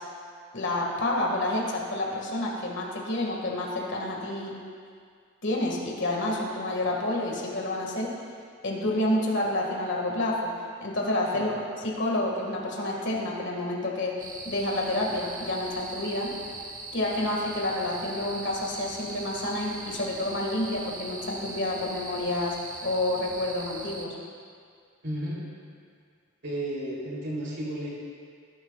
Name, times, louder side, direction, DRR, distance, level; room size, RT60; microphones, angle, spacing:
voice 1, 0.5-4.5 5.4-8.1 8.6-10.5 10.8-11.6 11.8-14.2 14.4-16.3 16.9-24.2, left 1 dB, 55° left, -2 dB, 1.9 m, -29 dB
sound 1, 14.2-24.1, right 3 dB, 35° right, 1.1 m, -40 dB
voice 2, 25.0-25.4 26.4-27.9, right 1 dB, 55° right, -5 dB, 3.3 m, -33 dB
19.0 x 11.0 x 2.4 m, 2.2 s
head